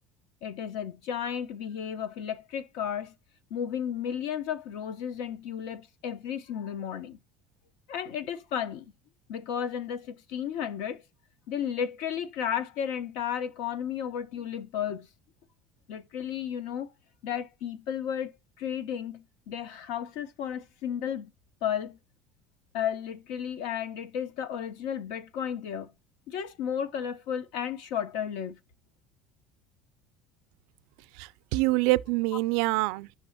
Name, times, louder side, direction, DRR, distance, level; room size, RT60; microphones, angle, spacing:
voice 1, 0.4-3.1 3.5-7.2 7.9-8.9 9.3-11.0 11.5-15.1 15.9-16.9 17.2-18.3 18.6-21.3 21.6-22.0 22.7-25.9 26.3-28.6, left 9 dB, 70° left, 0.7 m, -33 dB
voice 2, 31.2-33.2, right 21 dB, 65° right, 0.3 m, -26 dB
6.1 x 3.2 x 5.7 m
cardioid pair, 175°, 0 cm